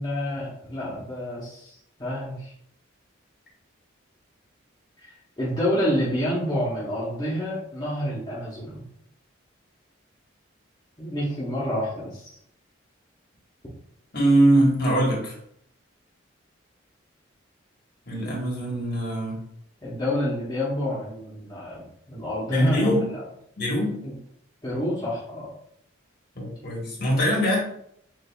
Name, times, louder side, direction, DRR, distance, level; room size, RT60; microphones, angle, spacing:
voice 1, 0.0-2.5 5.0-5.1 5.4-8.8 11.0-12.3 19.8-23.2 24.0-24.1 24.6-25.5, equal, 20° left, -8 dB, 1.0 m, -28 dB
voice 2, 14.1-15.3 18.1-19.4 22.5-23.1 23.6-24.0 26.3-27.6, right 1 dB, 50° left, -3 dB, 1.4 m, -22 dB
6.7 x 2.7 x 2.3 m, 0.69 s
head